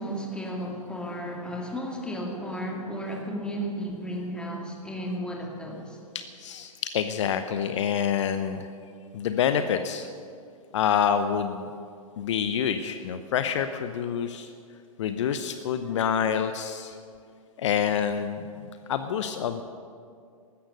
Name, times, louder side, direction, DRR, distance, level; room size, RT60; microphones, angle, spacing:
voice 1, 0.0-6.0, equal, 5° left, 0 dB, 2.4 m, -34 dB
voice 2, 6.1-8.7 9.1-10.1 10.7-11.7 12.2-14.5 15.0-17.0 17.6-19.6, left 8 dB, 55° left, 9 dB, 0.8 m, -27 dB
15.5 x 13.0 x 6.7 m, 2.3 s
figure-of-eight pair, 110°, 18 cm